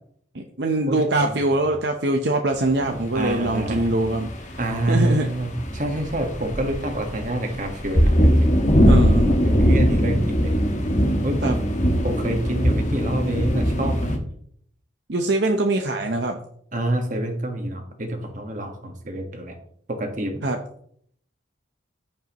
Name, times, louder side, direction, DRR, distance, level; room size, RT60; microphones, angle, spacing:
voice 1, 0.3-4.6 4.9-5.3 8.8-9.4 11.4-11.6 15.1-16.4 20.4-20.6, right 2 dB, 60° right, 3 dB, 0.8 m, -23 dB
voice 2, 0.9-1.7 2.8-3.9 4.6-8.5 9.4-10.5 11.2-11.6 12.0-14.2 16.7-19.5 19.9-20.5, right 1 dB, 40° right, 4 dB, 1.5 m, -27 dB
sound 1, 2.8-14.2, equal, 40° left, 1.3 m, -21 dB
14.5 x 5.4 x 3.0 m, 0.63 s
head